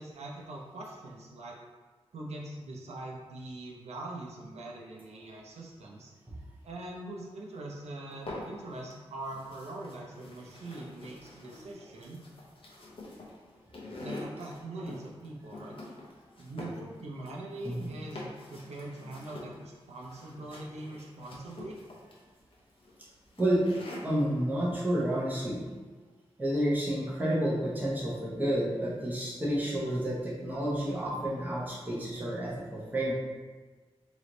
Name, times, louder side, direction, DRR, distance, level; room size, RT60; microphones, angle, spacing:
voice 1, 0.0-1.6 2.1-6.1 6.6-12.2 14.0-15.8 16.4-21.8, right 2 dB, 90° right, -2 dB, 0.7 m, -42 dB
sound 1, 8.1-8.9 9.2-24.2, left 2 dB, 55° left, 0.9 m, -46 dB
voice 2, 24.0-25.6 26.4-33.1, right 1 dB, 15° right, -6 dB, 1.0 m, -30 dB
3.3 x 3.1 x 3.9 m, 1.4 s
wide cardioid pair, 140°, 11 cm